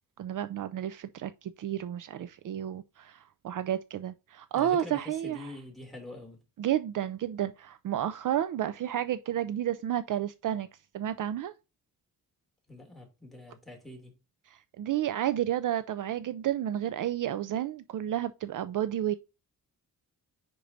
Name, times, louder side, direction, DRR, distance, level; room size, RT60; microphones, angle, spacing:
voice 1, 0.2-5.5 6.6-10.7 10.9-11.5 14.5-19.1, right 11 dB, 60° right, 0.5 m, -31 dB
voice 2, 4.5-6.4 12.7-14.1, left 2 dB, ahead, 2.5 m, -45 dB
10.0 x 4.6 x 2.6 m
wide cardioid pair, 140°, 36 cm